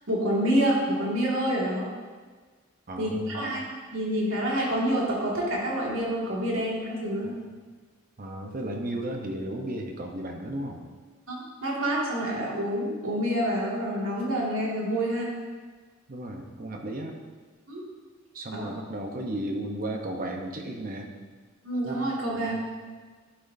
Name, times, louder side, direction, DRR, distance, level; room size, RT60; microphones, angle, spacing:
voice 1, 0.1-1.9 3.0-3.6 3.9-7.3 11.3-15.3 17.7-17.8 18.5-18.7 21.6-22.6, right 1 dB, 90° right, -4 dB, 2.2 m, -27 dB
voice 2, 2.9-3.5 8.2-10.8 16.1-17.2 18.3-21.1 22.3-22.6, right 1 dB, 45° right, 2 dB, 0.9 m, -34 dB
11.0 x 6.3 x 2.7 m, 1.4 s
head